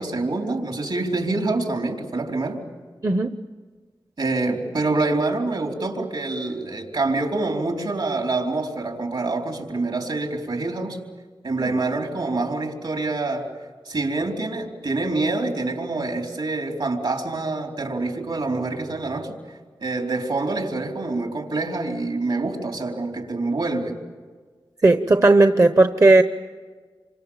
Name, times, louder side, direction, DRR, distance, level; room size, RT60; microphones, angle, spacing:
voice 1, 0.0-2.6 4.2-11.0 11.4-13.5 13.8-19.4 19.8-24.0, right 3 dB, 70° right, 2 dB, 4.3 m, -26 dB
voice 2, 3.0-3.4 11.6-11.8 24.8-26.2, right 2 dB, 40° right, 9 dB, 1.0 m, -16 dB
27.5 x 25.0 x 7.4 m, 1.5 s
cardioid pair, 45°, 9 cm